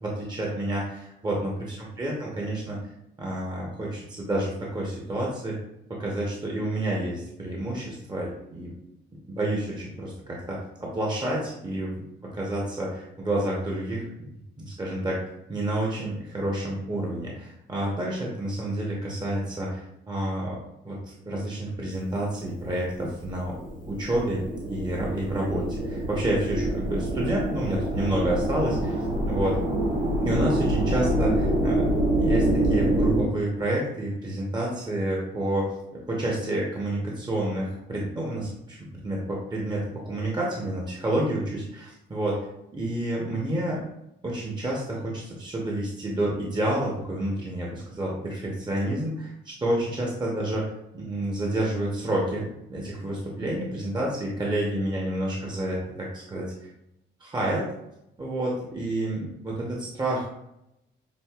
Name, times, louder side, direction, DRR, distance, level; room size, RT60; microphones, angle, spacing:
voice 1, 0.0-2.8 3.2-5.6 5.9-8.7 9.3-12.0 12.3-14.1 14.6-15.2 15.5-20.6 20.8-23.6 23.9-24.4 24.7-29.6 30.2-31.9 32.2-42.4 42.7-43.8 44.2-50.6 50.9-52.4 52.7-56.5 57.2-57.7 58.2-60.4, right 1 dB, 20° right, -2 dB, 0.9 m, -29 dB
sound 1, 23.1-33.2, right 1 dB, 40° right, 1.4 m, -26 dB
6.1 x 2.5 x 2.3 m, 0.83 s
cardioid pair, 90°, 20 cm